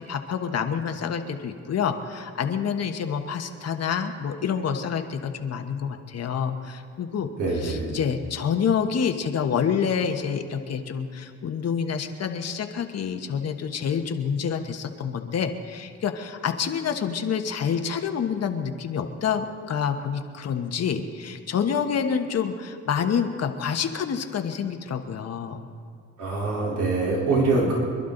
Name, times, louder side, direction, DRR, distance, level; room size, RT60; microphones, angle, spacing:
voice 1, 0.0-25.6 27.6-27.7, left 7 dB, 55° left, 6 dB, 1.3 m, -27 dB
voice 2, 7.4-7.9 26.2-27.8, right 3 dB, 85° right, -4 dB, 4.0 m, -24 dB
26.5 x 11.5 x 4.0 m, 2.3 s
cardioid pair, 90°, 30 cm